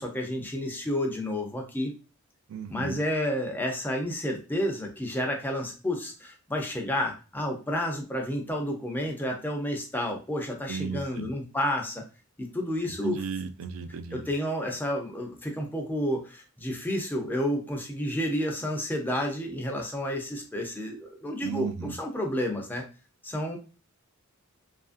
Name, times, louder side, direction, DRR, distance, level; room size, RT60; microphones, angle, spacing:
voice 1, 0.0-1.9 2.7-12.1 12.4-13.2 14.1-22.8 23.2-23.6, left 1 dB, 10° left, 1 dB, 0.5 m, -30 dB
voice 2, 2.5-3.0 10.7-11.3 13.0-14.3 21.4-22.0, right 6 dB, 65° right, 10 dB, 0.4 m, -35 dB
2.8 x 2.5 x 2.4 m, 0.33 s
head